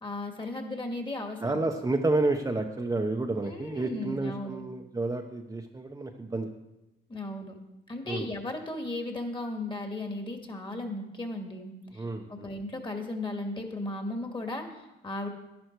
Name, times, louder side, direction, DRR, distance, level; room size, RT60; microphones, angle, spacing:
voice 1, 0.0-1.6 3.4-4.6 7.1-7.6 7.9-15.3, left 2 dB, 25° left, 4 dB, 2.1 m, -36 dB
voice 2, 1.4-6.5 8.1-8.3 11.9-12.5, right 2 dB, 15° right, 2 dB, 0.9 m, -30 dB
11.5 x 11.0 x 4.6 m, 0.95 s
cardioid pair, 90°, 20 cm